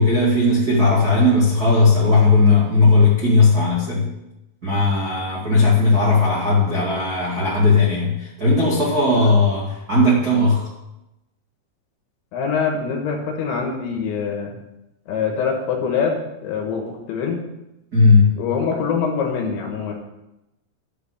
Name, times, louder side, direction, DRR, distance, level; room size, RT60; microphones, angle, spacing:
voice 1, 0.0-4.0 4.6-10.7 17.9-18.3, left 3 dB, 55° right, -8 dB, 1.0 m, -17 dB
voice 2, 12.3-14.6 15.1-17.5 18.4-19.9, left 6 dB, 70° left, 1 dB, 3.3 m, -24 dB
10.5 x 4.9 x 7.0 m, 0.93 s
omnidirectional pair, 6.0 m